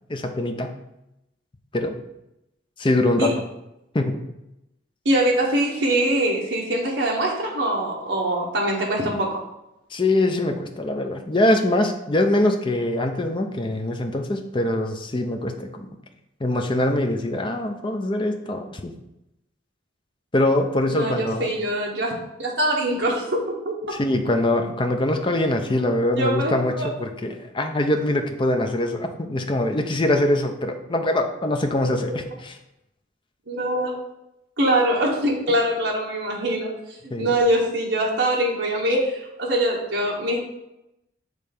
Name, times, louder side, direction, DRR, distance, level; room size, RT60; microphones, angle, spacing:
voice 1, 0.1-0.7 1.7-1.9 2.8-3.3 3.9-4.2 9.9-15.9 16.4-18.9 20.3-21.5 23.9-32.5 37.1-37.3, left 1 dB, 25° left, 4 dB, 0.6 m, -23 dB
voice 2, 5.0-9.4 20.9-22.1 22.4-23.7 26.1-26.9 31.8-32.1 33.5-33.9 34.6-40.4, right 1 dB, 60° right, -3 dB, 1.3 m, -23 dB
6.6 x 3.3 x 5.2 m, 0.88 s
head